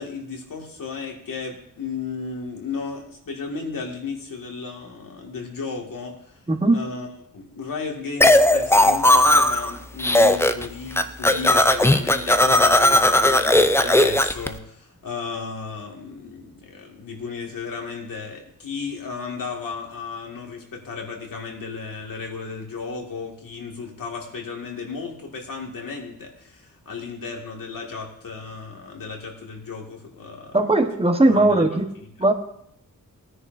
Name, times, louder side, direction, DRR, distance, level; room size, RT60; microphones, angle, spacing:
voice 1, 0.0-6.4 6.7-7.1 7.3-30.6 31.3-31.6, left 4 dB, 80° left, 1 dB, 2.1 m, -34 dB
voice 2, 6.5-6.8 30.5-31.9 32.2-32.3, right 2 dB, 20° right, 5 dB, 1.1 m, -18 dB
sound 1, 8.2-9.7 10.0-10.7 10.9-14.5, left 1 dB, 10° left, 0.4 m, -17 dB
19.0 x 9.9 x 2.7 m, 0.69 s
wide cardioid pair, 120°, 33 cm